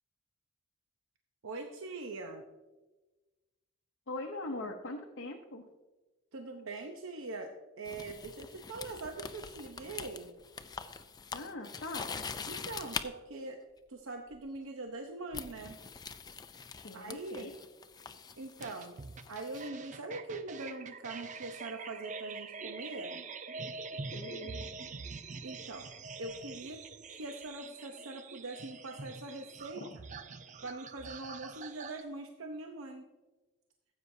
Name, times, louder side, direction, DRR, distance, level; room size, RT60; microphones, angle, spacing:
voice 1, 1.4-2.4 6.3-10.3 12.5-13.6 13.9-15.8 16.9-17.5 18.4-19.0 19.3-23.2 25.4-25.9 26.2-26.8 27.1-29.9 30.6-33.1, right 2 dB, 85° right, 3 dB, 0.8 m, -42 dB
voice 2, 4.1-5.6 11.3-12.3 16.8-17.5 24.1-24.7 29.8-29.9, left 2 dB, 65° left, 2 dB, 0.8 m, -41 dB
sound 1, 7.9-13.1 14.3-14.6 15.3-19.7, left 5 dB, 20° left, 0.4 m, -44 dB
sound 2, 18.6-32.0, right 4 dB, 40° right, 0.5 m, -45 dB
15.0 x 8.1 x 2.7 m, 1.2 s
head